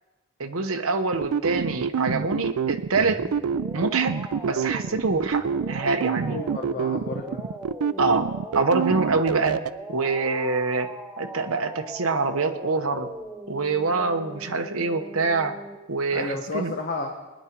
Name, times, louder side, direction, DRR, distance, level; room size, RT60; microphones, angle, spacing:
voice 1, 0.4-3.2 3.7-4.2 4.4-6.4 8.0-8.3 8.5-9.6 9.9-13.1 13.5-15.6 15.9-16.7, right 3 dB, 65° right, 6 dB, 1.1 m, -25 dB
sound 1, 1.1-9.7, right 6 dB, 85° right, 0.4 m, -26 dB
sound 2, 2.9-15.8, right 1 dB, 5° right, 0.9 m, -40 dB
voice 2, 6.2-7.5 16.1-17.1, left 3 dB, 45° left, 1 dB, 1.3 m, -32 dB
20.5 x 10.5 x 4.6 m, 1.2 s
head